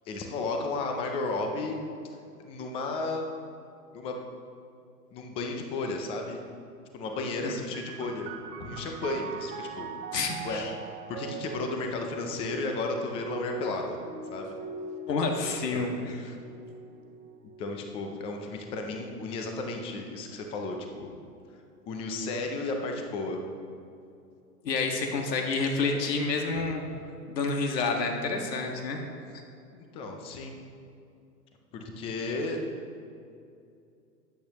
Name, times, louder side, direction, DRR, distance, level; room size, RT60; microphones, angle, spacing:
voice 1, 0.1-1.8 2.4-3.3 3.9-4.2 5.1-6.4 6.9-8.3 8.6-9.9 10.4-10.6 11.1-14.0 14.3-14.5 15.7-16.0 17.6-21.1 21.9-23.4 29.7-30.6 31.7-32.6, left 3 dB, 15° left, 3 dB, 0.4 m, -33 dB
sound 1, 7.7-21.0 21.8-22.6, right 5 dB, 35° right, 1.1 m, -43 dB
voice 2, 10.1-10.7 15.1-16.2 24.6-26.8 27.3-29.0, left 4 dB, 75° left, 2 dB, 1.7 m, -29 dB
12.5 x 8.6 x 2.9 m, 2.6 s
hypercardioid pair, 125°, 49 cm